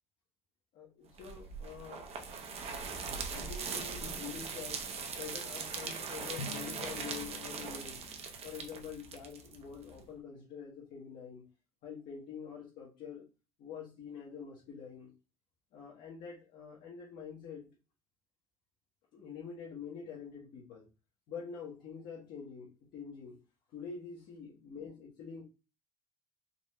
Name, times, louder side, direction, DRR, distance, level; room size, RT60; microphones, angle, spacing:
voice 1, 0.7-2.0 3.1-4.8 5.1-8.0 8.4-11.4 11.8-13.3 13.6-15.1 15.7-17.7 19.1-20.9 21.3-23.4 23.7-25.4, left 6 dB, 55° left, -4 dB, 1.2 m, -46 dB
sound 1, 1.2-10.0, right 5 dB, 35° right, 0.8 m, -41 dB
Drum, 6.4-9.0, left 4 dB, 90° left, 0.8 m, -48 dB
4.0 x 2.6 x 3.1 m, 0.30 s
cardioid pair, 135°, 17 cm